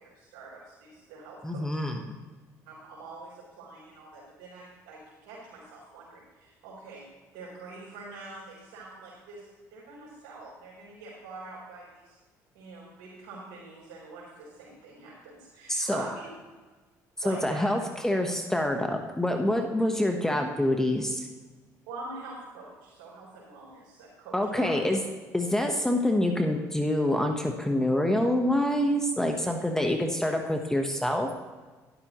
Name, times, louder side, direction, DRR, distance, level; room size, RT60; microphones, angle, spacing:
voice 1, 0.0-1.8 2.7-7.0 7.3-12.2 12.5-16.1 17.2-17.6 21.9-24.7, right 3 dB, 90° right, -8 dB, 3.9 m, -45 dB
voice 2, 1.4-2.2 15.7-16.0 17.2-21.3 24.3-25.0 25.3-31.3, left 1 dB, 5° left, 3 dB, 1.1 m, -26 dB
12.0 x 11.5 x 3.0 m, 1.3 s
supercardioid pair, 85°, 7 cm